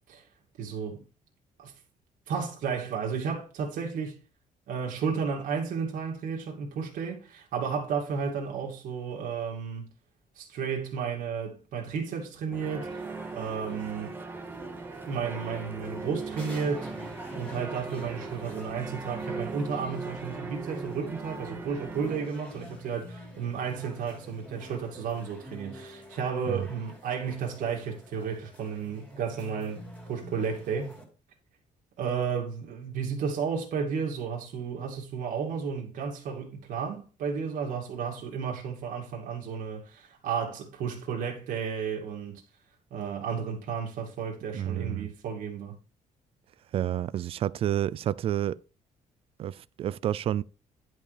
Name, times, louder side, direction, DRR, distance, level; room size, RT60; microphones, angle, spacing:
voice 1, 0.6-1.0 1.6-1.7 2.3-4.1 4.7-9.9 10.4-14.2 15.1-16.9 17.3-31.0 32.0-42.4 42.9-45.8, right 6 dB, 70° right, 2.3 m, -33 dB
sound 1, 12.5-22.3, right 4 dB, 15° right, 0.8 m, -39 dB
sound 2, 12.8-31.0, equal, 10° left, 2.8 m, -47 dB
voice 2, 44.5-45.1 46.7-48.6 49.4-50.4, right 11 dB, 45° right, 0.4 m, -29 dB
10.5 x 4.9 x 5.0 m
cardioid pair, 175°, 14 cm